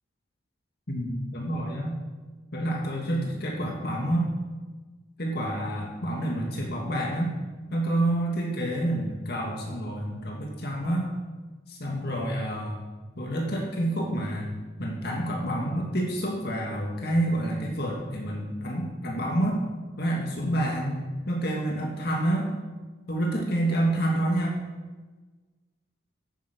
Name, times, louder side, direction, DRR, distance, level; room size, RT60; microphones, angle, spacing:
voice 1, 0.9-2.0 2.5-4.3 5.2-7.3 7.7-11.1 11.7-12.8 13.2-19.6 20.0-21.0 21.3-22.5 23.1-24.6, right 1 dB, 50° left, -1 dB, 2.0 m, -28 dB
10.5 x 9.3 x 5.2 m, 1.3 s
head